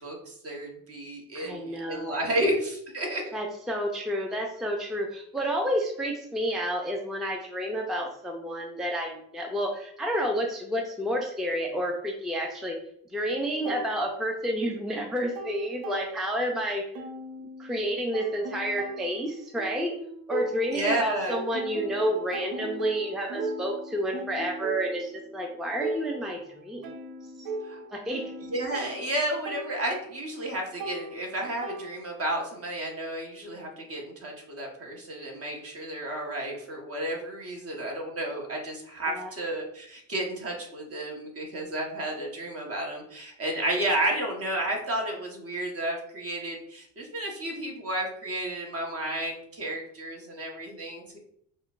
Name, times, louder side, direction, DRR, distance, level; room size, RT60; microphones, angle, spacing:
voice 1, 0.0-3.3 20.7-21.4 27.6-27.8 28.4-51.2, right 1 dB, 45° right, 0 dB, 1.1 m, -32 dB
voice 2, 1.3-2.4 3.3-12.8 13.1-16.8 17.6-20.0 20.3-26.9 27.4-27.5 27.9-28.3 39.1-39.3, equal, ahead, 1 dB, 0.4 m, -30 dB
sound 1, 13.7-14.8 15.1-16.6 17.0-21.0 21.3-32.4, right 2 dB, 80° right, 0.8 m, -37 dB
5.4 x 2.2 x 2.4 m, 0.69 s
cardioid pair, 100°, 34 cm